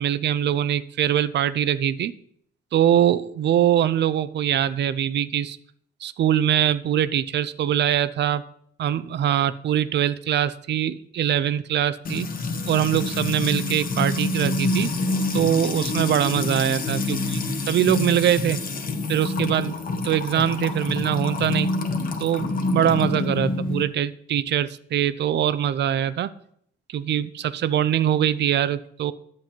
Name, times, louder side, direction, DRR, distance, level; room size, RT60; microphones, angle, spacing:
voice 1, 0.0-2.1 2.7-5.6 6.0-8.4 8.8-12.3 12.7-14.9 15.3-17.2 17.7-18.6 19.1-19.7 20.0-21.7 22.2-26.3 26.9-29.1, right 10 dB, 60° right, 16 dB, 0.6 m, -23 dB
Music / Water tap faucet / Trickle dribble, 12.0-23.8, left 2 dB, 45° left, 1.3 m, -27 dB
11.0 x 7.5 x 4.5 m, 0.67 s
cardioid pair, 90°, 20 cm